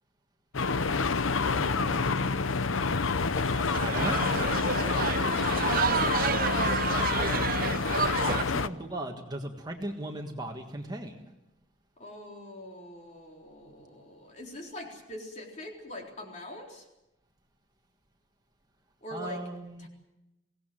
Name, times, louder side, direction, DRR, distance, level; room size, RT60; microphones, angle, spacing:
sound 1, 0.5-8.7, left 4 dB, 85° left, 0.8 m, -28 dB
voice 1, 1.5-2.3 3.8-4.2 6.2-7.5 8.2-11.2 19.1-19.9, right 1 dB, 20° right, 3 dB, 1.5 m, -38 dB
sound 2, 3.2-8.4, right 6 dB, 45° right, 0.7 m, -30 dB
voice 2, 4.9-5.7 12.0-16.9 19.0-19.4 19.8-19.9, left 1 dB, 35° left, 1 dB, 3.9 m, -43 dB
23.5 x 17.5 x 7.6 m, 0.93 s
head